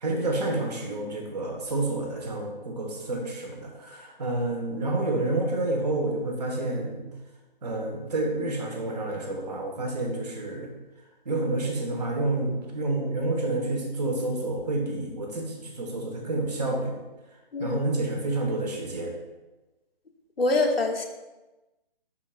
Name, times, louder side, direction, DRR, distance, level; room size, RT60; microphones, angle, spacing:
voice 1, 0.0-7.0 7.6-10.7 11.2-16.9 17.6-19.2, right 2 dB, 45° right, 1 dB, 1.4 m, -29 dB
voice 2, 20.4-21.1, left 2 dB, 80° left, 3 dB, 1.0 m, -24 dB
10.5 x 3.8 x 2.5 m, 1.1 s
figure-of-eight pair, 155°, 29 cm